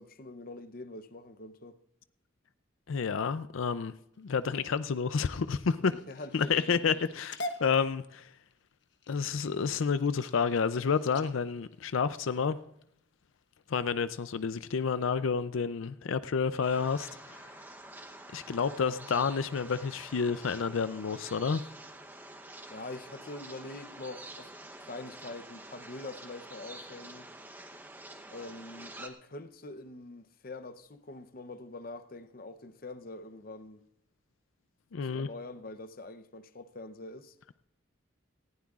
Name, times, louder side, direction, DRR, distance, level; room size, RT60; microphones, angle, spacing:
voice 1, 0.0-1.8 5.9-7.0 22.7-27.3 28.3-33.8 35.1-37.3, left 2 dB, 45° left, 0.7 m, -44 dB
voice 2, 2.9-5.9 6.3-8.3 9.1-12.6 13.7-17.5 18.3-21.6 34.9-35.3, left 5 dB, 85° left, 0.5 m, -30 dB
sound 1, 4.1-12.8 13.4-13.8 14.2-14.6 15.0-15.1 15.4-15.5, left 1 dB, 60° left, 1.1 m, -46 dB
sound 2, 16.6-29.1, right 1 dB, 10° right, 0.8 m, -48 dB
19.0 x 15.5 x 2.4 m
head